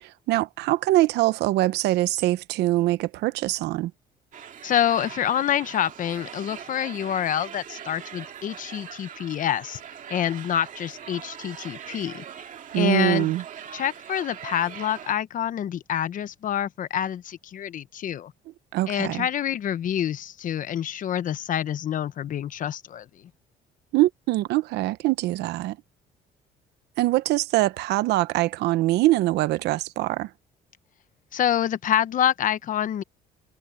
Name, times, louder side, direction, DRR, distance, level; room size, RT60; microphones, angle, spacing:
voice 1, 0.0-3.9 12.7-13.4 18.7-19.3 23.9-25.8 27.0-30.3, right 17 dB, 80° right, 0.8 m, -23 dB
sound 1, 4.3-15.1, right 9 dB, 50° right, 2.2 m, -42 dB
voice 2, 4.6-9.8 10.1-12.2 12.7-13.3 13.7-18.3 18.9-23.0 31.3-33.0, left 10 dB, 50° left, 0.9 m, -27 dB
cardioid pair, 110°, 17 cm